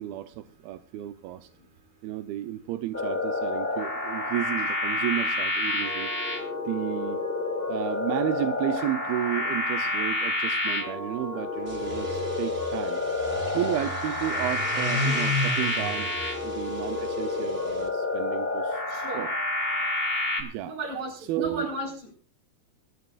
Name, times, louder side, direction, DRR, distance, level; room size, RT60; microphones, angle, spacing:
voice 1, 0.0-1.5 2.0-6.1 6.7-7.2 7.7-13.0 13.5-16.1 16.4-18.8 19.1-19.3 20.4-20.8 21.2-21.7, right 13 dB, 85° right, 8 dB, 2.6 m, -32 dB
sound 1, 2.9-20.4, left 2 dB, 15° left, 2.2 m, -29 dB
sound 2, 11.6-17.9, left 1 dB, 25° right, 1.4 m, -34 dB
voice 2, 18.9-19.3 20.6-22.1, right 1 dB, 50° right, 1 dB, 5.9 m, -34 dB
22.5 x 13.0 x 2.5 m, 0.41 s
omnidirectional pair, 4.3 m